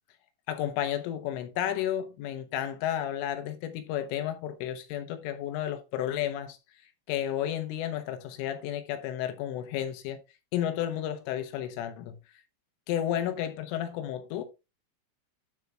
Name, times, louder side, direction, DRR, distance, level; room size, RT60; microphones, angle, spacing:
voice 1, 0.5-6.6 7.1-10.2 10.5-12.2 12.9-14.4, left 11 dB, 80° left, 3.5 m, -32 dB
12.0 x 4.7 x 3.3 m
omnidirectional pair, 5.7 m